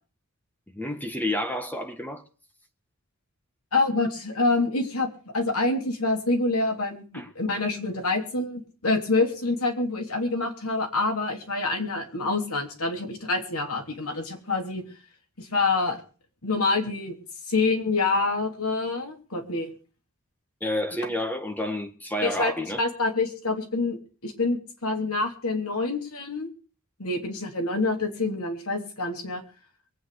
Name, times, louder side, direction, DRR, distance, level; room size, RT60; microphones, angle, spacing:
voice 1, 0.7-2.2 7.1-7.3 20.6-22.8, left 1 dB, 10° left, 1.7 m, -29 dB
voice 2, 3.7-14.8 15.4-16.0 16.4-17.2 17.5-19.7 22.2-22.5 22.8-26.5 27.0-29.4, left 3 dB, 85° left, 3.2 m, -26 dB
23.5 x 9.0 x 4.9 m
head